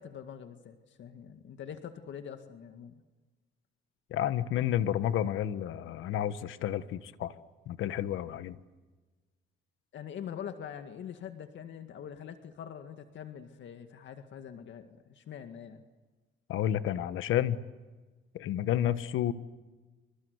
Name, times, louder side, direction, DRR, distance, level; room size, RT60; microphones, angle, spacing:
voice 1, 0.0-2.9 9.9-15.8, left 8 dB, 70° left, 7 dB, 2.0 m, -44 dB
voice 2, 4.1-7.3 7.7-8.6 16.5-17.6 18.3-19.3, left 11 dB, 85° left, 13 dB, 1.3 m, -30 dB
27.5 x 26.5 x 8.1 m, 1.3 s
cardioid pair, 90°, 20 cm